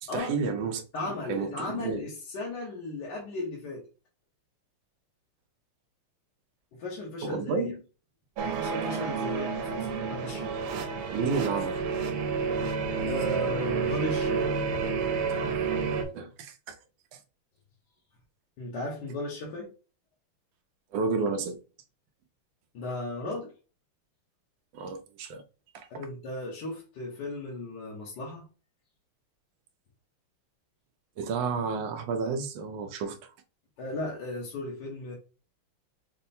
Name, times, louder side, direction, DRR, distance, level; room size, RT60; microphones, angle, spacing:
voice 1, 0.0-2.0 7.2-7.8 11.1-11.9 15.3-15.4 15.9-16.8 17.1-17.2 20.9-21.6 24.7-25.4 25.7-25.9 31.2-33.2, right 4 dB, 70° right, 1.3 m, -31 dB
voice 2, 0.9-3.8 6.7-7.7 8.6-10.5 13.1-14.6 18.6-19.7 22.7-23.5 25.9-28.5 33.8-35.1, left 2 dB, 55° left, 1.5 m, -36 dB
sound 1, 8.4-16.0, right 5 dB, 85° right, 1.6 m, -30 dB
5.4 x 2.2 x 4.1 m
omnidirectional pair, 2.4 m